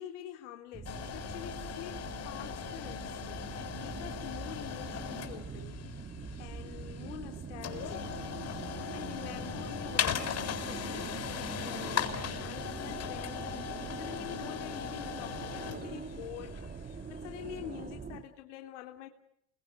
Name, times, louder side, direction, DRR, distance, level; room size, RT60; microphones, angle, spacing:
voice 1, 0.0-5.8 6.4-8.1 8.4-19.1, left 12 dB, 80° left, 4 dB, 3.4 m, -46 dB
sound 1, 0.7-18.2, right 5 dB, 25° right, 2.6 m, -43 dB
sound 2, 0.8-17.7, left 8 dB, 45° left, 7.2 m, -39 dB
28.5 x 24.5 x 7.8 m, 0.72 s
supercardioid pair, 95°, 36 cm